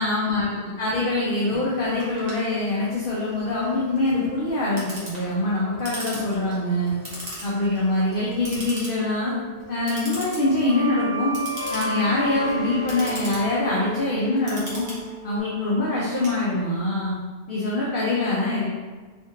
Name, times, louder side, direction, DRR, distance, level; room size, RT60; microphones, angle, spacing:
voice 1, 0.0-6.9 7.4-9.3 9.7-11.3 11.7-14.8 15.2-17.1 17.5-18.7, left 2 dB, 55° left, -7 dB, 0.9 m, -24 dB
sound 1, 1.5-8.7 9.0-15.4, equal, 35° left, 1.3 m, -35 dB
Clock, 2.0-16.9, equal, 35° right, 1.1 m, -40 dB
3.6 x 3.6 x 2.8 m, 1.4 s
omnidirectional pair, 1.2 m